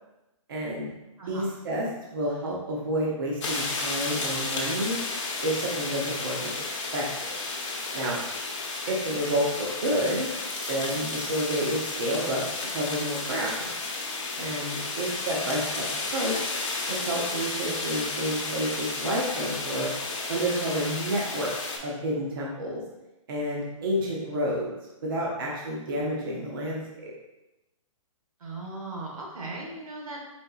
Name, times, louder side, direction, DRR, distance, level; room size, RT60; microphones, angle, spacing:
voice 1, 0.5-0.9 1.3-5.0 5.4-6.6 6.9-7.1 7.9-8.2 8.9-10.3 10.7-12.4 12.7-13.7 14.4-15.9 16.1-16.4 16.9-19.9 20.3-22.8 23.3-24.7 25.0-27.1, equal, 40° right, -4 dB, 0.7 m, -29 dB
voice 2, 1.2-1.5 9.1-9.2 28.4-30.3, right 2 dB, 85° right, -1 dB, 1.2 m, -38 dB
sound 1, 3.4-21.8, left 3 dB, 55° left, 0.9 m, -32 dB
4.2 x 3.8 x 2.3 m, 0.98 s
hypercardioid pair, 175°, 18 cm